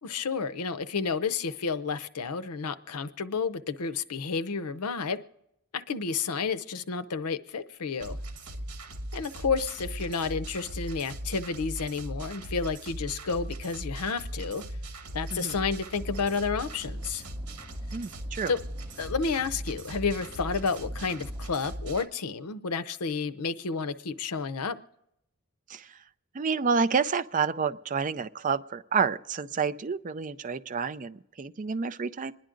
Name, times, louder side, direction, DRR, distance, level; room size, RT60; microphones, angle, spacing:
voice 1, 0.0-5.2 5.7-8.2 9.1-14.6 15.1-17.2 18.5-18.6 19.0-24.8, left 5 dB, 90° left, 0.7 m, -31 dB
sound 1, 8.0-22.0, right 1 dB, 90° right, 1.1 m, -39 dB
sound 2, 15.9-21.5, equal, 15° right, 2.2 m, -52 dB
voice 2, 17.9-18.5 25.7-25.9 26.3-32.3, right 5 dB, 35° right, 0.4 m, -29 dB
26.0 x 10.5 x 3.8 m
head